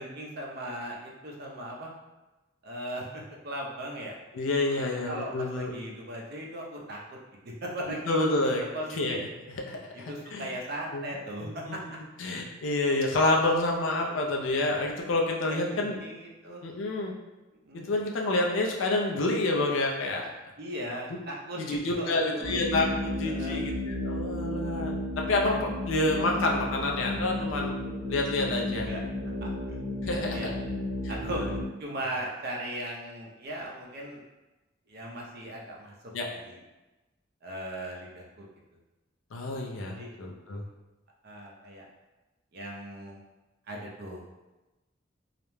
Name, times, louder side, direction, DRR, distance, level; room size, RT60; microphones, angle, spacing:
voice 1, 0.0-1.9 2.6-4.1 4.8-7.0 7.4-8.4 8.7-9.2 9.9-11.8 14.1-14.2 15.4-16.6 17.6-17.9 20.6-22.5 23.2-23.7 27.2-27.3 28.7-29.0 29.4-29.8 30.0-30.5 31.1-31.4 31.8-34.2 34.9-35.9 36.3-36.6 37.4-38.5 39.9-40.1 41.2-41.9 42.5-43.2 43.7-44.2, right 1 dB, 55° right, -2 dB, 0.5 m, -38 dB
voice 2, 4.3-5.7 7.9-8.7 9.0-10.5 10.9-11.0 11.4-16.0 16.6-17.1 17.7-20.3 21.6-25.0 25.3-27.7 28.1-28.9 30.0-30.5 31.0-31.4 36.1-36.3 39.3-40.6, left 2 dB, 80° left, 0 dB, 0.4 m, -28 dB
sound 1, 22.4-31.6, left 1 dB, 15° right, 0.7 m, -33 dB
2.4 x 2.1 x 3.0 m, 1.1 s
head